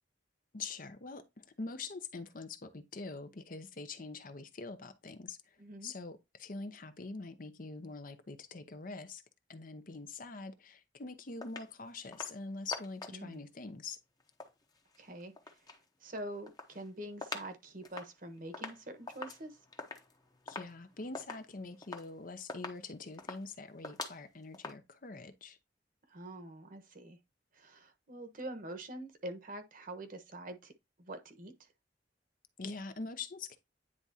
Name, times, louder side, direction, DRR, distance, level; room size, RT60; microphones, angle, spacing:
voice 1, 0.5-5.4 5.8-9.2 9.5-14.0 20.5-25.6 32.6-33.6, left 3 dB, 50° left, 0.8 m, -44 dB
voice 2, 5.6-5.9 13.1-13.4 15.0-15.3 16.0-19.6 26.1-27.2 27.5-30.7 31.0-31.7, right 1 dB, 50° right, 1.2 m, -45 dB
sound 1, 11.4-11.7 12.1-12.4 12.7-13.3 14.2-15.8 16.2-17.5 17.8-24.7, left 3 dB, 20° left, 0.9 m, -46 dB
9.7 x 3.6 x 2.7 m
head